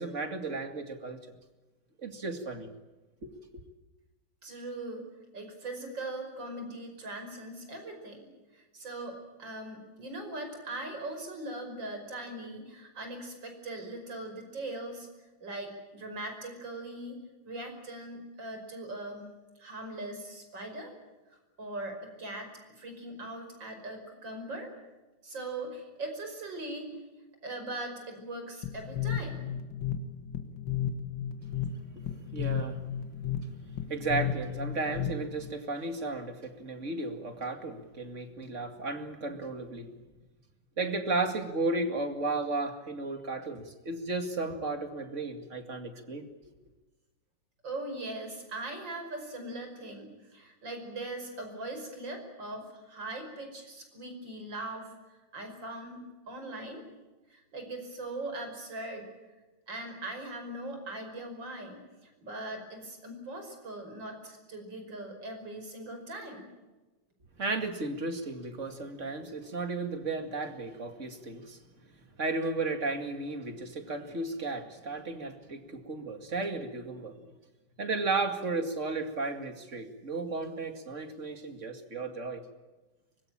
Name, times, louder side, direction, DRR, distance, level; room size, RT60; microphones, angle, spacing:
voice 1, 0.0-1.4 2.0-2.7 3.2-3.6 31.4-32.8 33.9-39.9 40.8-46.5 67.4-71.6 72.2-77.3 77.8-82.4, right 3 dB, 40° right, 2.6 m, -34 dB
voice 2, 4.4-5.0 5.3-15.1 15.4-17.2 17.4-19.3 19.6-20.9 21.3-24.7 25.2-26.9 27.4-29.5 47.6-56.8 57.3-59.1 59.7-66.5, right 2 dB, 80° right, 6.1 m, -40 dB
sound 1, 28.6-35.5, left 9 dB, 75° left, 2.3 m, -34 dB
24.5 x 21.5 x 8.9 m
omnidirectional pair, 2.0 m